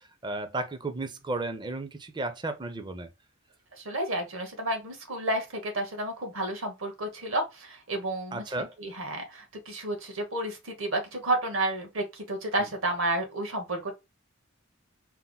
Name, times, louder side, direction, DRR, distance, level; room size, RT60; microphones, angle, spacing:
voice 1, 0.0-3.1 8.3-8.7 12.6-12.7, right 2 dB, 20° right, 0.5 m, -34 dB
voice 2, 3.8-13.9, right 1 dB, 65° right, 1.3 m, -31 dB
4.3 x 2.1 x 3.9 m
head